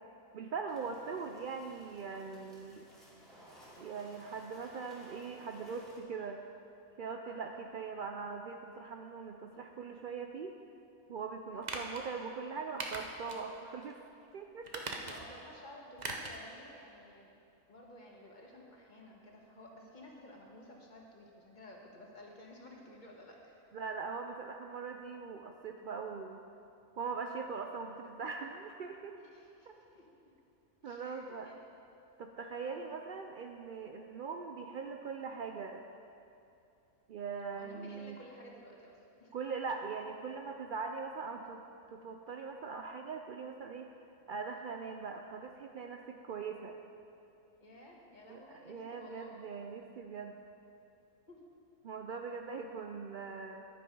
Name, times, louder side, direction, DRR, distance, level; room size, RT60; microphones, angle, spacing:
voice 1, 0.3-2.8 3.8-6.4 7.0-10.6 11.1-13.9 14.3-14.8 23.7-26.4 27.0-29.2 30.8-31.5 32.2-35.8 37.1-38.2 39.3-41.6 41.9-43.9 44.3-46.8 48.3-50.4 51.8-53.6, right 5 dB, 80° right, 4 dB, 0.4 m, -41 dB
sound 1, 0.7-6.0, equal, ahead, 2.4 m, -58 dB
voice 2, 7.2-7.6 11.7-11.9 15.0-17.4 17.7-23.6 29.1-30.0 30.8-31.6 32.5-33.0 37.5-39.3 47.6-49.4 51.3-51.5, left 1 dB, 35° left, -1 dB, 1.5 m, -54 dB
sound 2, 11.6-12.0 12.8-13.4 13.8-13.9 14.6-15.4 16.0-16.4 16.7-16.8, right 3 dB, 35° right, 0.8 m, -40 dB
10.5 x 8.8 x 5.3 m, 2.7 s
omnidirectional pair, 1.5 m